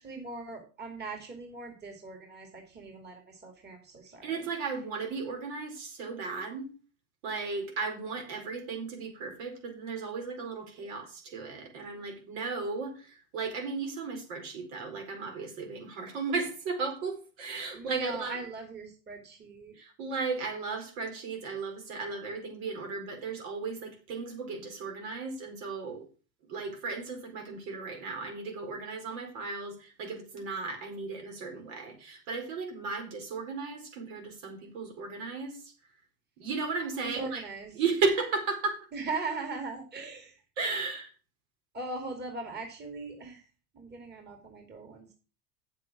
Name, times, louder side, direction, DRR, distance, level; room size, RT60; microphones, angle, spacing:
voice 1, 0.0-4.4 17.7-19.8 37.0-37.8 38.9-40.4 41.7-43.4 43.7-45.1, right 3 dB, 25° right, 4 dB, 2.7 m, -40 dB
voice 2, 4.2-6.7 7.2-18.4 19.8-26.0 26.5-35.7 36.4-37.4 37.8-38.9 40.6-41.1, right 4 dB, 65° right, 3 dB, 4.4 m, -35 dB
8.4 x 7.5 x 6.2 m, 0.35 s
supercardioid pair, 120°, 44 cm